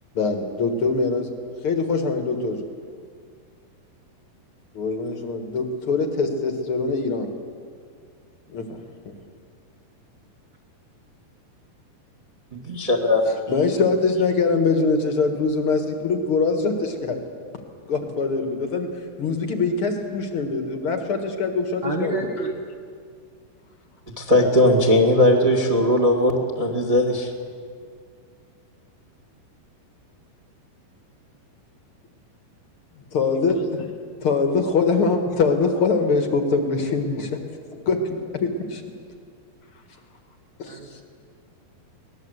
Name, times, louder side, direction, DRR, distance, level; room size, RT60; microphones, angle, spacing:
voice 1, 0.1-1.3 1.6-2.7 4.7-7.3 8.5-8.8 9.0-9.1 13.3-17.2 17.8-18.9 19.2-22.3 33.1-33.9 34.2-37.4 37.8-38.8 40.6-41.0, left 4 dB, 50° left, 5 dB, 1.8 m, -23 dB
voice 2, 12.5-13.2 24.2-27.3, left 1 dB, 15° right, 1 dB, 1.3 m, -19 dB
voice 3, 21.8-22.6 40.7-41.0, right 2 dB, 60° right, 2 dB, 1.1 m, -29 dB
23.5 x 19.0 x 8.0 m, 2.1 s
omnidirectional pair, 4.5 m